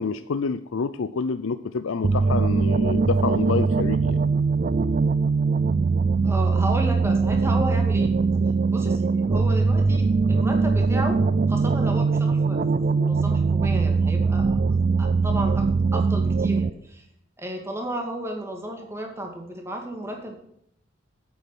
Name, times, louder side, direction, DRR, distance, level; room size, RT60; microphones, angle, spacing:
voice 1, 0.0-4.2, left 4 dB, 75° left, 11 dB, 0.5 m, -27 dB
sound 1, 2.0-16.7, right 4 dB, 40° right, 0.4 m, -21 dB
voice 2, 6.2-8.1 8.7-11.2 11.5-14.6 15.0-15.7 15.9-17.1 17.4-20.4, right 1 dB, 15° right, 2 dB, 2.1 m, -33 dB
9.3 x 8.5 x 6.1 m, 0.73 s
head